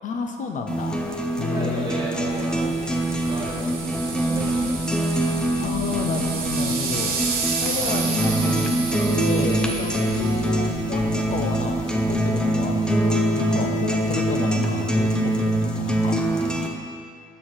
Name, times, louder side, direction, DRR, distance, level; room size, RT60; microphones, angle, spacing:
voice 1, 0.0-1.9 2.2-2.3 2.7-2.8 5.6-16.3, left 5 dB, 50° left, 3 dB, 0.6 m, -31 dB
sound 1, 0.7-16.7, right 1 dB, 5° left, 0.6 m, -24 dB
voice 2, 1.5-2.9 3.2-4.8 7.6-8.0, right 2 dB, 30° right, -2 dB, 1.3 m, -34 dB
sound 2, 2.3-12.6, right 4 dB, 60° right, 1.1 m, -32 dB
5.6 x 4.5 x 6.4 m, 2.3 s
cardioid pair, 110°, 17 cm